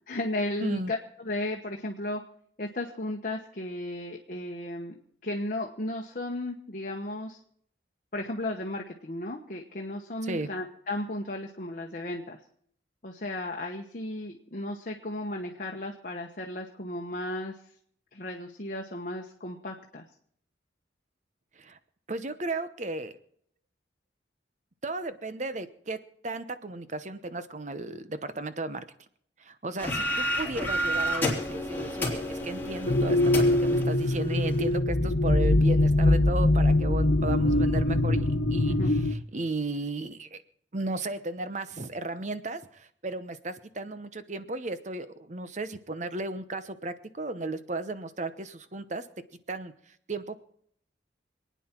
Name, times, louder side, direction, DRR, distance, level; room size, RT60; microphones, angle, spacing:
voice 1, 0.1-2.2 2.6-4.9 5.2-7.4 8.1-12.4 13.0-17.6 18.1-20.0 38.7-38.9, left 1 dB, 45° left, 1 dB, 1.1 m, -34 dB
voice 2, 0.6-0.9 10.2-10.5 21.6-21.8 22.1-23.2 24.8-26.0 26.2-28.8 29.4-40.4 40.7-49.1 49.5-49.7 50.1-50.4, right 2 dB, 40° right, 12 dB, 0.9 m, -35 dB
sound 1, 29.8-34.7, equal, 10° left, 3.5 m, -31 dB
sound 2, 32.9-39.1, left 1 dB, 70° left, 1.2 m, -23 dB
26.5 x 9.4 x 4.5 m, 0.65 s
head